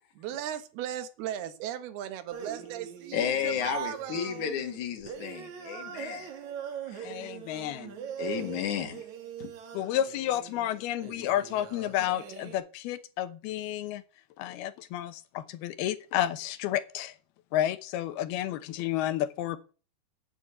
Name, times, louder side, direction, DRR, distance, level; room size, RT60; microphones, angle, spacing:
voice 1, 0.2-4.5, right 11 dB, 80° right, 3.3 m, -37 dB
sound 1, 2.3-12.6, right 8 dB, 55° right, 2.8 m, -42 dB
voice 2, 3.1-6.2 7.0-7.3 8.2-9.0 9.4-9.5, left 8 dB, 55° left, 3.3 m, -32 dB
voice 3, 7.0-8.0 9.7-14.0 14.4-17.2 17.5-19.6, left 12 dB, 80° left, 2.9 m, -31 dB
9.1 x 8.6 x 9.3 m
omnidirectional pair, 4.5 m